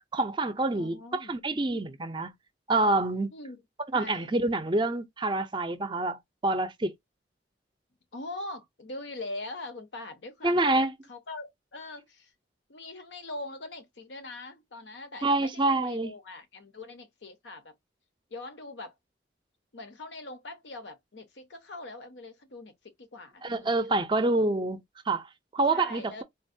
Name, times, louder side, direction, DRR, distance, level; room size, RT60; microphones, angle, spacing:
voice 1, 0.1-2.3 2.7-3.3 3.9-6.9 10.4-10.9 15.2-16.1 23.4-25.3 25.5-26.2, right 2 dB, 25° right, 0.5 m, -27 dB
voice 2, 0.7-1.4 3.3-3.6 3.9-4.3 8.1-12.3 12.7-17.7 18.3-18.9 19.7-22.7 23.0-24.1 25.7-26.2, left 2 dB, 80° left, 0.8 m, -42 dB
3.8 x 2.2 x 2.6 m
head